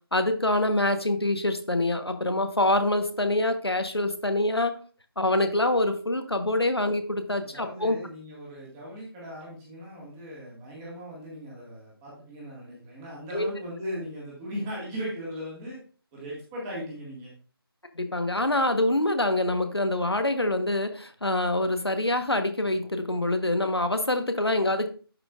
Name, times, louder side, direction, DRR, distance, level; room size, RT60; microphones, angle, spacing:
voice 1, 0.1-4.8 5.2-8.0 13.3-13.5 17.9-24.9, left 1 dB, 80° left, 8 dB, 1.2 m, -25 dB
voice 2, 7.4-15.8 16.1-17.3, equal, 10° right, -5 dB, 1.9 m, -38 dB
11.0 x 5.1 x 2.5 m, 0.40 s
figure-of-eight pair, 160°, 13 cm